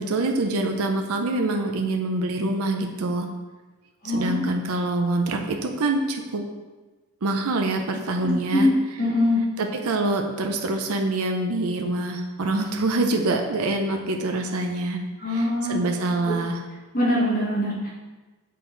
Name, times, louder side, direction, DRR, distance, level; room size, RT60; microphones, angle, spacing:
voice 1, 0.0-3.3 4.0-6.4 7.2-8.7 9.6-16.6, right 2 dB, 80° right, 3 dB, 0.6 m, -25 dB
voice 2, 8.2-8.7 9.0-9.4 15.2-15.7 16.2-16.3 16.9-17.9, left 1 dB, 40° left, -5 dB, 1.6 m, -23 dB
6.6 x 3.9 x 3.9 m, 1.2 s
head